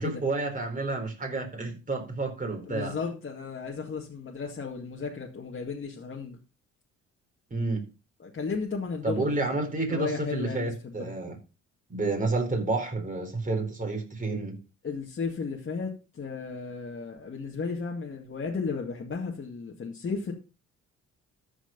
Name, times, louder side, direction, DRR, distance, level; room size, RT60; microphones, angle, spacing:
voice 1, 0.0-3.0 7.5-7.9 9.0-11.4 11.9-14.6, right 2 dB, 25° right, 4.4 m, -30 dB
voice 2, 2.7-6.4 8.2-9.3 9.9-11.1 14.8-20.3, left 5 dB, 40° left, 2.1 m, -34 dB
13.5 x 5.1 x 5.3 m
cardioid pair, 90°, 30 cm